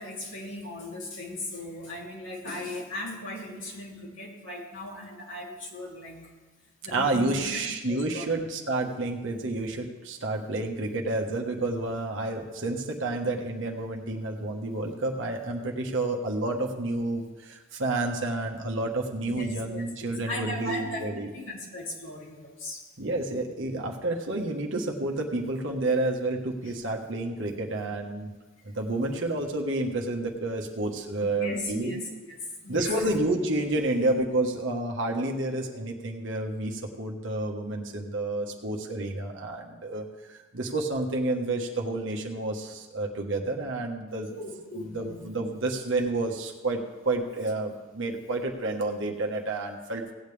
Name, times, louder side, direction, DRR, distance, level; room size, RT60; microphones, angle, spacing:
voice 1, 0.0-6.3 6.8-7.6 7.9-8.4 19.3-22.8 31.2-33.1 44.3-45.2, left 1 dB, 70° left, -4 dB, 2.8 m, -37 dB
voice 2, 6.9-21.3 23.0-28.3 28.6-31.9 32.7-44.3 44.7-50.1, right 2 dB, 70° right, 1 dB, 1.4 m, -30 dB
17.5 x 9.0 x 3.4 m, 1.2 s
head